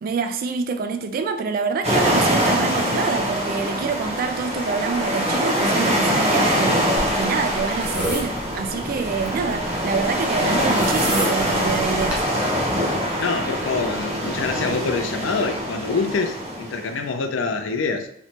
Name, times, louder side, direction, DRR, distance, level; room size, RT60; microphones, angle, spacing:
voice 1, 0.0-12.2, right 5 dB, 50° right, 0.3 m, -26 dB
sound 1, 1.8-17.0, equal, 35° right, 0.9 m, -23 dB
sound 2, 7.0-12.3, right 1 dB, 5° right, 0.7 m, -31 dB
voice 2, 13.2-18.1, left 4 dB, 75° left, 0.4 m, -25 dB
3.2 x 3.0 x 2.8 m
head